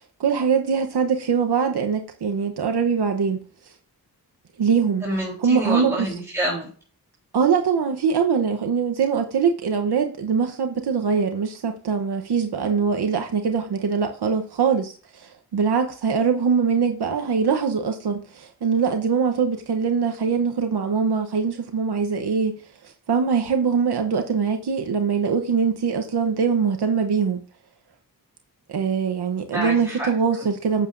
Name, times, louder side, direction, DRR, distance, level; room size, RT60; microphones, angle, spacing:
voice 1, 0.2-3.4 4.6-5.0 5.4-5.9 7.3-22.6 23.1-27.4 28.7-30.9, right 6 dB, 85° right, 1.0 m, -22 dB
voice 2, 5.0-6.7 29.5-30.1, right 1 dB, 5° right, 3.7 m, -27 dB
10.0 x 7.9 x 2.6 m
wide cardioid pair, 70°, 38 cm